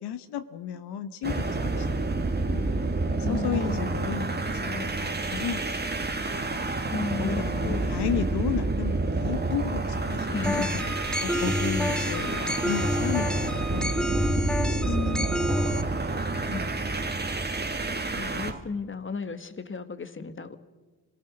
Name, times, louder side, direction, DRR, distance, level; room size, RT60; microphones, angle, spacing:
voice 1, 0.0-1.9 2.4-2.7 3.3-5.6 7.2-10.6 11.2-15.2 16.0-17.2, left 9 dB, 80° left, 10 dB, 1.1 m, -34 dB
sound 1, 1.2-18.6, right 3 dB, 25° right, 2.1 m, -29 dB
voice 2, 3.2-3.9 6.9-8.6 10.3-10.8 11.3-11.5 14.9-15.3 17.8-20.6, left 4 dB, 30° left, 10 dB, 1.8 m, -34 dB
sound 2, 10.4-15.8, left 1 dB, ahead, 1.3 m, -29 dB
27.5 x 18.5 x 6.4 m, 1.3 s
supercardioid pair, 55°, 39 cm